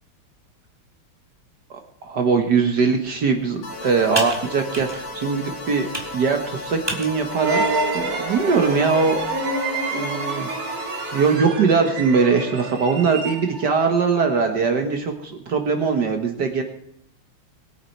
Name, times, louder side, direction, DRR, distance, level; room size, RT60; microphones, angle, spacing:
voice 1, 1.7-7.6 7.9-9.2 9.9-10.8 11.1-16.6, right 5 dB, 55° right, 5 dB, 1.7 m, -21 dB
Computer keyboard, 2.7-9.5, right 1 dB, 10° right, 2.1 m, -36 dB
sound 1, 3.6-11.4, left 2 dB, 70° left, 3.6 m, -35 dB
sound 2, 7.3-13.8, right 3 dB, 75° right, 2.6 m, -27 dB
22.0 x 8.5 x 4.5 m, 0.70 s
omnidirectional pair, 2.4 m